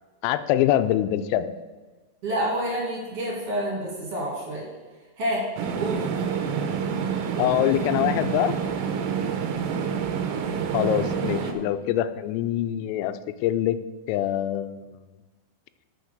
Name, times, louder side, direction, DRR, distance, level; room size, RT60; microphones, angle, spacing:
voice 1, 0.2-1.5 7.4-8.5 10.7-13.8 14.1-15.0, left 12 dB, 85° left, 12 dB, 3.2 m, -24 dB
voice 2, 2.2-4.6 5.2-6.0 11.6-11.7, right 1 dB, 40° right, -3 dB, 2.3 m, -28 dB
sound 1, 5.6-11.5, right 6 dB, 80° right, 3.2 m, -27 dB
7.0 x 6.7 x 6.5 m, 1.2 s
omnidirectional pair, 5.8 m